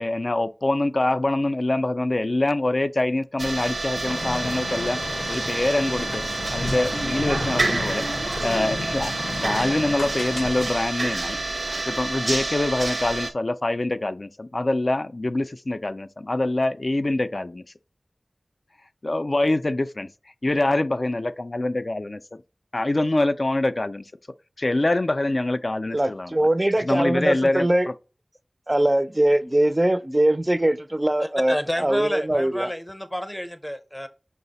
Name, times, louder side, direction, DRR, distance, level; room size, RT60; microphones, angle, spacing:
voice 1, 0.0-5.0 5.3-8.0 8.4-17.6 19.0-20.1 20.4-22.2 22.7-24.1 24.6-26.5 26.8-27.9, left 2 dB, 50° left, 0.3 m, -25 dB
sound 1, 3.4-13.3, right 2 dB, 80° right, 0.5 m, -28 dB
sound 2, 4.1-10.7, left 2 dB, 90° left, 0.7 m, -33 dB
voice 2, 25.9-27.9 28.7-32.7, right 1 dB, 25° right, 0.4 m, -22 dB
voice 3, 31.2-34.1, equal, 10° left, 0.6 m, -30 dB
5.5 x 2.0 x 3.9 m
wide cardioid pair, 60°, 0 cm